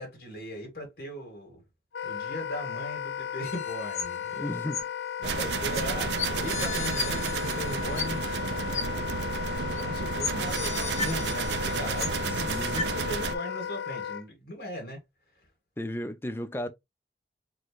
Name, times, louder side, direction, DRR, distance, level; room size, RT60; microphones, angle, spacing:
voice 1, 0.0-1.6 2.0-4.6 5.2-9.3 9.7-15.0, left 1 dB, 65° left, 2.2 m, -38 dB
Wind instrument woodwind instrument, 1.9-14.2, left 9 dB, 80° left, 0.4 m, -35 dB
sound 1, 3.4-4.4 4.7-4.8 5.7-5.8 6.2-8.4 8.7-8.8 9.8-9.9 10.2-12.4 12.7-12.8, left 5 dB, 40° left, 0.8 m, -35 dB
voice 2, 4.4-4.9 5.8-5.9 12.3-12.8 15.8-16.7, left 1 dB, 15° left, 0.4 m, -34 dB
sound 2, 5.2-13.4, right 6 dB, 80° right, 0.4 m, -32 dB
4.4 x 3.1 x 3.1 m
head